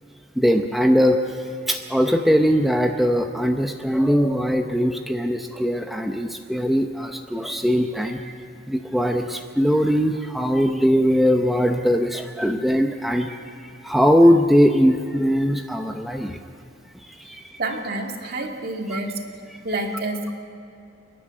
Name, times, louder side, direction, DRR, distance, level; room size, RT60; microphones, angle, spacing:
voice 1, 0.4-1.2 1.7-8.2 8.7-16.4 17.2-17.6, equal, ahead, 3 dB, 0.7 m, -20 dB
voice 2, 17.3-19.2 19.6-20.3, right 2 dB, 50° right, 1 dB, 2.5 m, -29 dB
29.0 x 11.0 x 9.2 m, 2.7 s
head